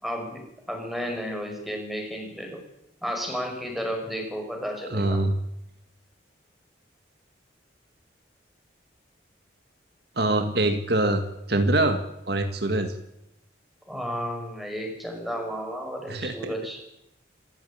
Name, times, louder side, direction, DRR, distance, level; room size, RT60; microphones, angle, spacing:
voice 1, 0.0-2.6 3.0-5.2 13.9-16.8, equal, ahead, 2 dB, 5.6 m, -32 dB
voice 2, 4.9-5.3 10.2-12.0 12.3-13.0 16.1-16.3, right 2 dB, 55° right, 6 dB, 1.9 m, -24 dB
26.5 x 15.0 x 8.9 m, 0.84 s
head